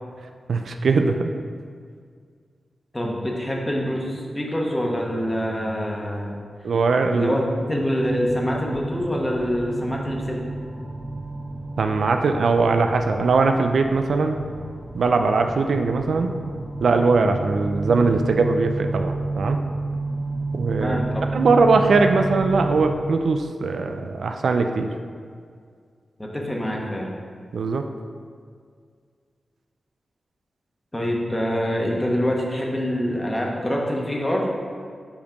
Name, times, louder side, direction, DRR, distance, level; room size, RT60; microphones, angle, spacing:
voice 1, 0.5-1.3 6.6-7.3 11.8-14.4 15.0-16.3 16.8-19.6 20.5-21.0 21.3-24.9 27.5-27.8, right 4 dB, 80° right, 5 dB, 0.4 m, -20 dB
voice 2, 2.9-6.4 7.1-7.4 7.7-10.4 20.8-21.3 26.2-27.1 30.9-34.5, equal, 15° left, -1 dB, 1.1 m, -25 dB
sound 1, 8.0-22.9, right 2 dB, 20° right, 0.9 m, -31 dB
5.7 x 4.3 x 5.1 m, 2.1 s
wide cardioid pair, 75°, 0 cm